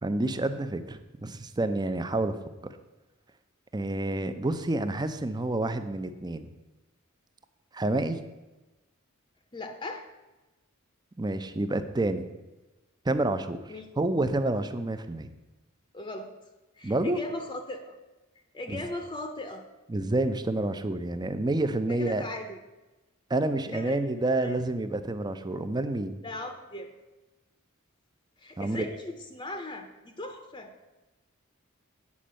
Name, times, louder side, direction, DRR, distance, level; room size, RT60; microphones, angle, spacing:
voice 1, 0.0-2.4 3.7-6.5 7.7-8.2 11.2-12.3 13.0-15.3 16.8-17.2 18.7-18.8 19.9-22.2 23.3-26.2 28.6-28.9, right 2 dB, 20° right, 10 dB, 0.5 m, -28 dB
voice 2, 9.5-10.0 13.7-13.9 15.9-16.3 16.8-18.0 18.5-19.6 21.9-22.6 23.7-24.0 24.4-24.6 26.2-26.9 28.4-30.7, left 2 dB, 20° left, 6 dB, 0.7 m, -38 dB
8.5 x 5.2 x 7.5 m, 1.1 s
head